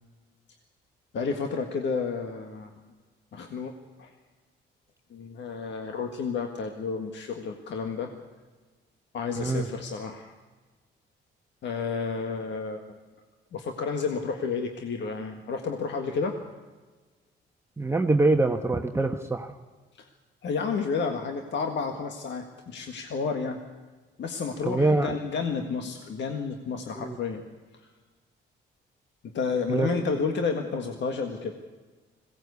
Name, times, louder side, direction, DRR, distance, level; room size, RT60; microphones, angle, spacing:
voice 1, 1.1-2.7 3.3-3.7 4.0-4.1 5.1-8.1 9.1-10.3 11.6-12.8 13.5-16.4 20.0-20.1 20.4-23.6 24.2-27.4 27.7-27.9 29.3-31.5, left 5 dB, 65° left, 4 dB, 1.8 m, -31 dB
voice 2, 9.4-9.7 17.8-19.5 24.6-25.2 26.9-27.2 29.7-29.9, right 2 dB, 15° right, 4 dB, 1.1 m, -24 dB
21.0 x 17.5 x 8.3 m, 1.4 s
cardioid pair, 90°, 20 cm